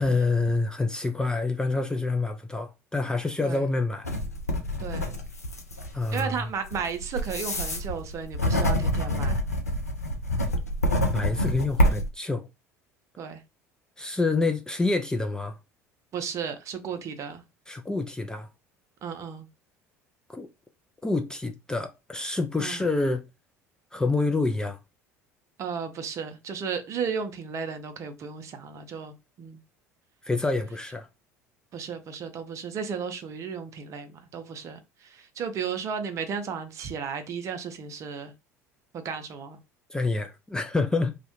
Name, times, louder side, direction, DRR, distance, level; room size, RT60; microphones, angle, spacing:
voice 1, 0.0-4.1 5.9-6.5 11.1-12.5 14.0-15.6 17.7-18.5 20.3-20.5 21.0-23.2 23.9-24.8 30.2-31.1 39.9-41.2, left 3 dB, 10° left, 0.3 m, -27 dB
sound 1, 4.0-12.1, equal, 85° left, 0.5 m, -27 dB
voice 2, 6.1-9.4 13.2-13.4 16.1-17.4 19.0-19.5 22.6-22.8 25.6-29.6 31.7-38.3 38.9-39.6, right 6 dB, 40° right, 0.6 m, -34 dB
2.3 x 2.1 x 2.9 m
figure-of-eight pair, 65°, 8 cm